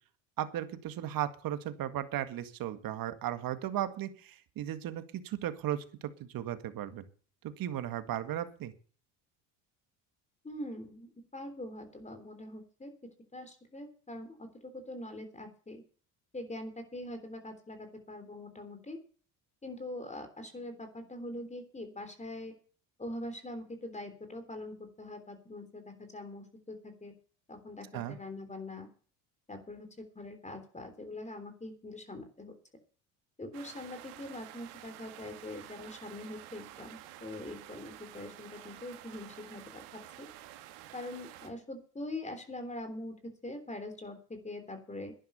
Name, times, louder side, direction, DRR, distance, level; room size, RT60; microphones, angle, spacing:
voice 1, 0.4-7.0 7.4-8.7 27.9-28.2, right 11 dB, 60° right, 10 dB, 1.9 m, -36 dB
voice 2, 10.4-12.9 13.3-15.8 16.3-19.0 19.6-22.5 23.0-27.1 27.5-28.9 29.5-32.5 33.4-40.3 40.9-45.1, left 1 dB, 20° left, 8 dB, 3.4 m, -43 dB
sound 1, 33.5-41.5, right 13 dB, 80° right, 2.1 m, -50 dB
11.0 x 11.0 x 6.9 m, 0.43 s
supercardioid pair, 90°, 39 cm